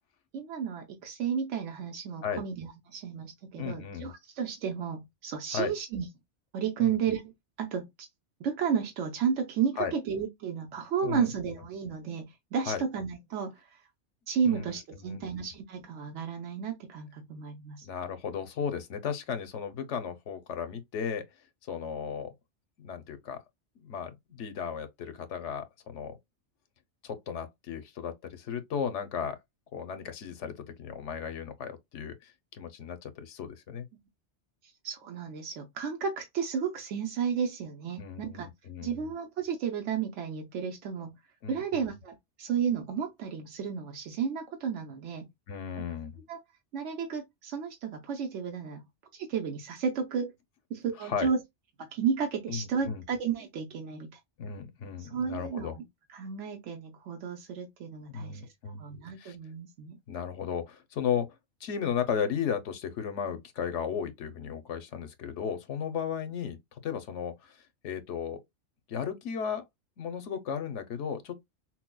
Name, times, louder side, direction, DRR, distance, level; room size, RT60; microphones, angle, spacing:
voice 1, 0.3-6.1 6.5-7.3 7.6-8.1 8.4-13.8 14.3-17.9 34.6-38.5 38.8-41.2 41.5-45.3 46.3-46.4 46.7-48.9 49.1-50.3 50.7-51.4 51.8-54.2 55.0-55.8 56.1-58.4 58.8-60.0, right 7 dB, 85° right, 1.0 m, -33 dB
voice 2, 3.6-4.1 5.5-5.7 6.8-7.0 9.8-9.9 11.0-11.3 12.7-12.8 14.4-15.4 17.8-21.3 21.6-22.3 22.8-23.4 23.8-26.2 27.0-29.4 29.7-33.9 38.0-39.1 41.4-41.8 45.5-46.1 51.0-51.3 52.5-53.0 54.4-55.7 58.1-58.8 59.2-59.4 60.1-61.4 61.6-68.4 68.9-69.6 70.0-71.5, left 7 dB, 85° left, 1.1 m, -35 dB
5.8 x 2.1 x 2.2 m
omnidirectional pair, 1.2 m